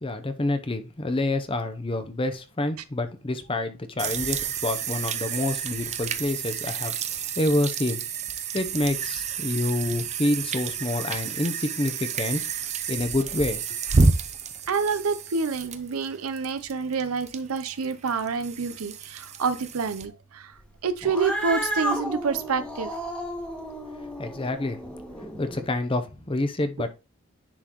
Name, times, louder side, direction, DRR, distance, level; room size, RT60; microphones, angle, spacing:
voice 1, 0.0-8.0 8.5-12.4 12.9-13.8 24.0-24.8 25.4-26.9, left 2 dB, 25° left, 0.7 m, -28 dB
sound 1, 4.0-20.1, right 5 dB, 30° right, 0.5 m, -30 dB
voice 2, 14.7-20.5 20.8-22.9, right 5 dB, 80° right, 0.6 m, -28 dB
Cat, 21.0-25.7, equal, 5° left, 1.1 m, -32 dB
10.0 x 3.8 x 3.0 m
head